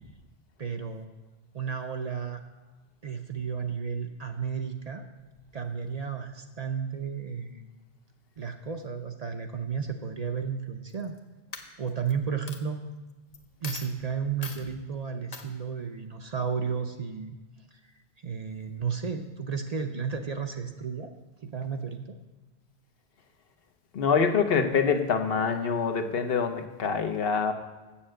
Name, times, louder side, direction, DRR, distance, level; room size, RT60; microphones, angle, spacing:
voice 1, 0.6-1.1 1.5-2.4 3.0-5.0 5.5-7.7 8.4-11.1 11.8-12.8 13.6-17.4 18.2-21.1 21.4-22.0, right 6 dB, 45° right, 5 dB, 0.6 m, -33 dB
Coin (dropping), 10.9-11.2 11.5-12.1 12.5-12.6 13.3-13.4 13.6-13.9 14.4-14.6 15.3-15.5, left 4 dB, 40° left, 0.8 m, -39 dB
voice 2, 23.9-27.5, left 5 dB, 65° left, 7 dB, 1.0 m, -25 dB
7.5 x 7.2 x 7.6 m, 1.2 s
omnidirectional pair, 1.1 m